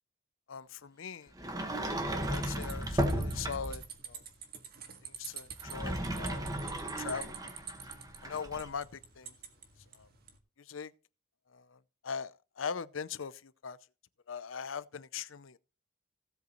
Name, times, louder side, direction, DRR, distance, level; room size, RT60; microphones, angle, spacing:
voice 1, 0.5-1.3 2.3-4.2 5.0-6.4 7.0-7.4 8.2-9.3 9.9-10.1 10.6-10.9 11.5-13.8 14.3-15.6, left 6 dB, 80° left, 0.6 m, -41 dB
Sliding door, 1.4-3.9 5.5-8.7, right 1 dB, 20° right, 1.5 m, -35 dB
sound 1, 2.2-10.4, right 7 dB, 50° right, 1.8 m, -48 dB
17.0 x 8.0 x 3.1 m
head